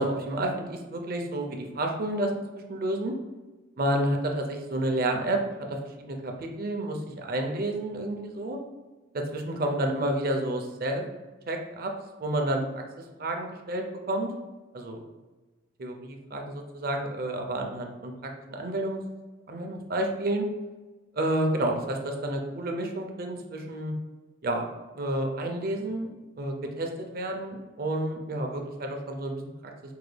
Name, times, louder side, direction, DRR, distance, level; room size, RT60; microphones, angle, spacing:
voice 1, 0.0-2.3 2.7-3.1 3.8-5.4 5.7-8.6 9.1-11.0 11.5-11.9 12.2-12.8 13.2-14.3 14.7-15.0 15.8-19.0 19.5-20.4 21.2-23.9 24.4-24.6 25.0-26.1 26.4-29.7, right 1 dB, 50° right, 3 dB, 0.6 m, -30 dB
4.6 x 2.2 x 3.3 m, 1.2 s
head